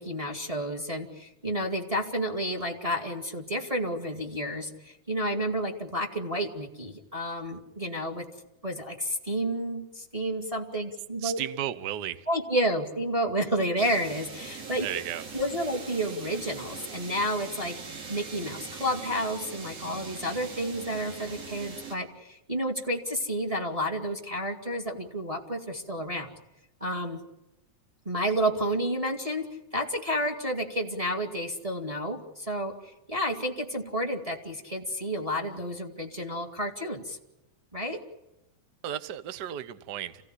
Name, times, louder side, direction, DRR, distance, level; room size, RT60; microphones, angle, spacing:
voice 1, 0.0-8.3 8.6-11.4 12.3-14.9 15.3-17.8 18.1-26.3 26.8-27.2 28.1-37.2 37.7-38.0, equal, 15° right, 4 dB, 1.9 m, -30 dB
voice 2, 11.2-12.3 14.8-15.2 38.8-40.3, right 11 dB, 70° right, 13 dB, 0.9 m, -34 dB
sound 1, 13.8-22.0, right 5 dB, 50° right, 3.8 m, -41 dB
28.0 x 16.5 x 9.9 m, 0.91 s
omnidirectional pair, 3.6 m